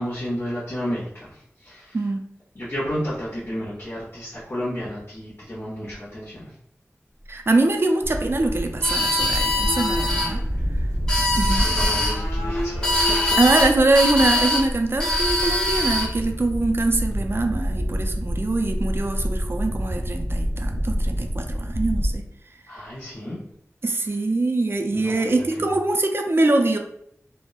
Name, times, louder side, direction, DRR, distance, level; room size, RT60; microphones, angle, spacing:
voice 1, 0.0-2.0 2.5-6.5 11.3-13.4 22.7-23.4 24.9-25.7, equal, 50° left, -9 dB, 0.7 m, -32 dB
voice 2, 7.3-10.4 11.4-11.7 13.4-22.2 23.8-26.8, right 2 dB, 45° right, 4 dB, 0.3 m, -23 dB
sound 1, 8.0-22.2, equal, 65° right, 0.7 m, -28 dB
sound 2, 8.5-14.5, left 1 dB, 85° left, 0.5 m, -34 dB
sound 3, 8.8-10.3 10.9-12.2 12.8-13.7 13.9-14.7 15.0-16.1, left 1 dB, 15° left, 0.7 m, -23 dB
2.9 x 2.0 x 2.2 m, 0.71 s
wide cardioid pair, 60°, 5 cm